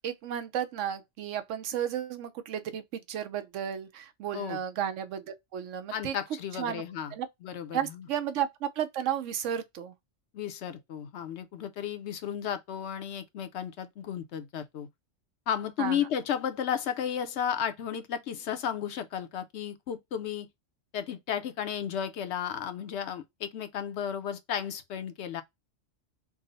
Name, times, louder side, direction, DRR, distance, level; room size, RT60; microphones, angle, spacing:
voice 1, 0.0-6.1 6.5-6.8 7.1-7.3 7.7-9.9 15.8-16.1, right 9 dB, 90° right, 1.0 m, -33 dB
voice 2, 5.9-7.1 7.4-8.0 10.3-14.9 15.5-20.5 20.9-25.4, left 9 dB, 70° left, 0.9 m, -33 dB
3.7 x 2.1 x 3.9 m
omnidirectional pair, 1.2 m